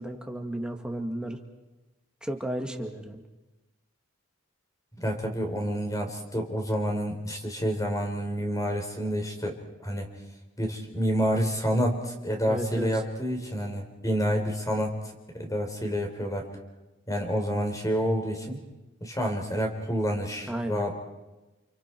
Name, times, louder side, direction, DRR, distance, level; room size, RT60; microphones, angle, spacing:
voice 1, 0.0-1.4 2.2-3.2 12.5-13.0 20.5-20.8, right 1 dB, 5° right, 3 dB, 2.0 m, -33 dB
voice 2, 5.0-9.5 9.8-10.1 10.6-14.9 15.3-16.5 17.1-18.6 19.0-21.0, equal, 15° left, 3 dB, 3.9 m, -28 dB
29.5 x 28.5 x 4.6 m, 1.1 s
head